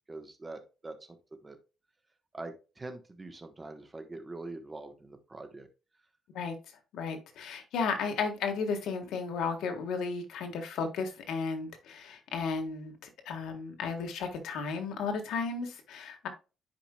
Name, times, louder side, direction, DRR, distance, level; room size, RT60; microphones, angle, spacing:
voice 1, 0.1-1.0 1.3-1.6 2.3-5.7, right 2 dB, 15° right, 7 dB, 1.1 m, -43 dB
voice 2, 6.9-16.3, left 5 dB, 80° left, 5 dB, 1.4 m, -34 dB
10.5 x 4.8 x 2.2 m, 0.31 s
cardioid pair, 145°, 0 cm